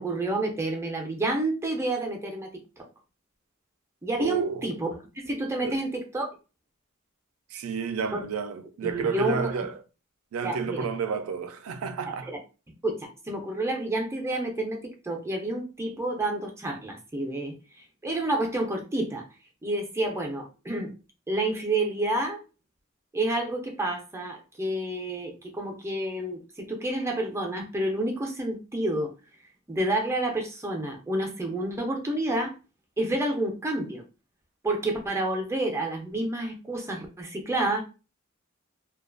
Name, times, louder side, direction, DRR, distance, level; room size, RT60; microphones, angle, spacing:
voice 1, 0.0-2.5 2.8-2.9 4.0-4.9 5.2-6.3 8.1-8.2 8.8-9.5 10.4-10.9 12.3-12.4 12.8-14.8 15.0-19.2 19.6-20.9 21.3-22.4 23.1-29.1 29.7-32.5 33.0-34.0 34.6-37.8, right 2 dB, 15° right, 0.4 m, -29 dB
voice 2, 4.2-4.7 5.6-5.8 7.5-9.7 10.3-12.3, right 5 dB, 85° right, 0.4 m, -31 dB
2.4 x 2.2 x 2.4 m
head